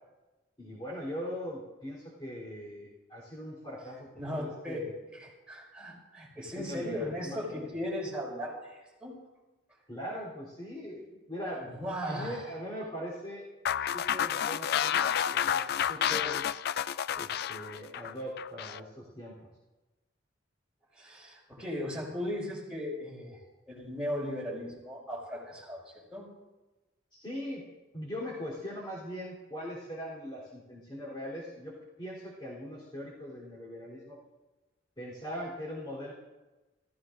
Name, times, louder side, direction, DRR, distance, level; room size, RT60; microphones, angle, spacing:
voice 1, 0.6-5.0 6.4-7.7 9.9-11.7 12.0-13.5 13.8-16.5 17.1-19.5 27.1-27.7 27.9-34.2 35.0-36.1, equal, 25° left, -5 dB, 3.6 m, -41 dB
voice 2, 4.1-9.1 11.6-12.4 20.9-26.3, left 1 dB, 5° right, -4 dB, 5.8 m, -37 dB
sound 1, 13.6-18.8, left 9 dB, 55° left, 0.4 m, -30 dB
29.0 x 15.0 x 2.6 m, 1.1 s
head